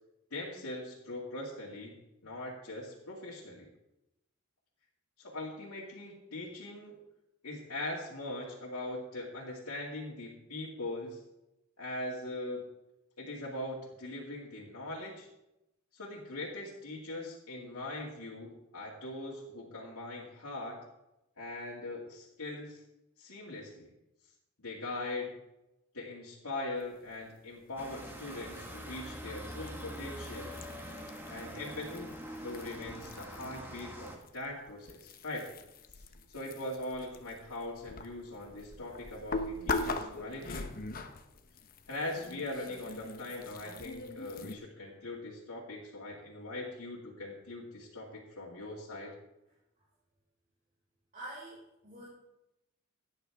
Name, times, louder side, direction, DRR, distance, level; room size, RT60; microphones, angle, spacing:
voice 1, 0.3-3.7 5.2-6.9 7.4-11.2 11.8-12.6 13.2-15.3 15.9-20.8 21.4-22.8 23.2-23.9 24.6-25.3 25.9-30.5 31.3-32.1 32.4-35.5 36.3-40.7 41.9-49.1, left 2 dB, 80° left, -6 dB, 2.3 m, -41 dB
sound 1, 27.8-34.2, equal, 10° right, 1.6 m, -44 dB
sound 2, 28.5-33.8 34.1-44.6, left 3 dB, 40° left, 0.9 m, -42 dB
voice 2, 51.1-52.1, right 1 dB, 40° right, -8 dB, 5.2 m, -46 dB
16.5 x 9.8 x 3.5 m, 0.91 s
head